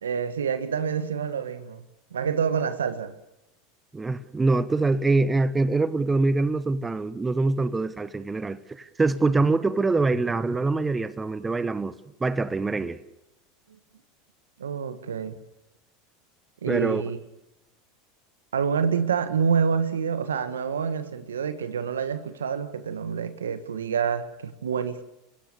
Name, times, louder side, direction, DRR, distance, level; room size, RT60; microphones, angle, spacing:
voice 1, 0.0-1.8 2.1-3.1 14.6-15.3 16.6-17.2 18.5-25.0, right 6 dB, 85° right, 1.6 m, -27 dB
voice 2, 3.9-11.9 12.2-13.0 16.7-17.0, right 3 dB, 15° right, 1.2 m, -24 dB
28.5 x 16.5 x 7.0 m
hypercardioid pair, 90°, 0 cm